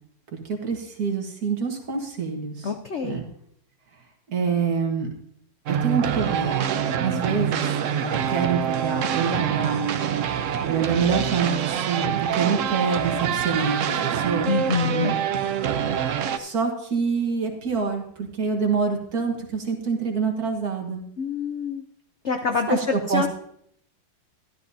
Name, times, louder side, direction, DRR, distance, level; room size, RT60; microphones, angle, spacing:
voice 1, 0.5-2.7 3.0-3.2 4.3-5.1 5.7-10.0 10.7-14.5 14.9-15.2 16.4-21.0 22.7-23.2, right 5 dB, 50° right, 3 dB, 1.8 m, -26 dB
voice 2, 2.6-3.2 14.4-15.1 21.2-21.8 22.2-23.3, left 5 dB, 70° left, 5 dB, 0.6 m, -26 dB
sound 1, 5.7-16.4, right 8 dB, 90° right, 0.6 m, -25 dB
13.0 x 12.5 x 2.7 m, 0.68 s
omnidirectional pair, 2.1 m